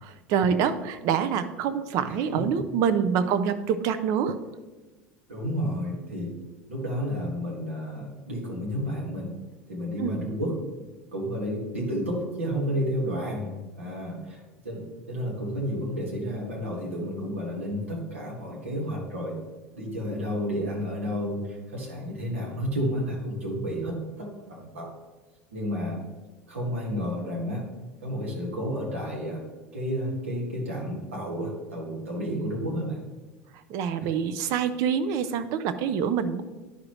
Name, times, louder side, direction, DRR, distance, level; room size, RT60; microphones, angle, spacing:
voice 1, 0.0-4.4 10.0-10.3 33.7-36.4, right 7 dB, 60° right, 11 dB, 0.6 m, -26 dB
voice 2, 5.3-6.3 6.7-9.3 9.7-10.6 11.1-19.4 19.7-21.4 21.7-24.9 25.5-26.0 26.5-27.7 28.0-29.4 29.7-33.0 34.0-34.1, equal, 85° right, -3 dB, 2.0 m, -31 dB
11.0 x 4.8 x 3.2 m, 1.2 s
hypercardioid pair, 80°, 7 cm